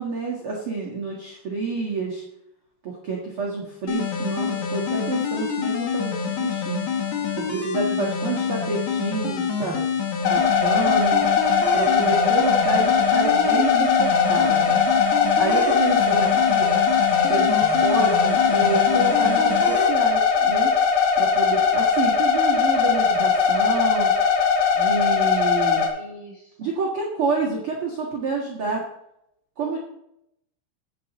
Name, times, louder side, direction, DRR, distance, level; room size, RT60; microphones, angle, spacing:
voice 1, 0.0-2.2 2.8-6.9 7.4-9.7 10.2-11.2 11.7-16.7 17.3-20.7 21.2-24.1 24.7-25.9 26.6-28.8 29.6-29.8, right 3 dB, 60° right, -3 dB, 1.4 m, -28 dB
sound 1, 3.9-19.9, left 6 dB, 60° left, 1.9 m, -27 dB
voice 2, 8.1-8.4 16.1-16.7 25.7-26.7, left 1 dB, 45° left, -2 dB, 5.3 m, -45 dB
sound 2, 10.2-25.9, left 6 dB, 80° left, 4.4 m, -20 dB
17.5 x 7.3 x 4.2 m, 0.79 s
omnidirectional pair, 5.5 m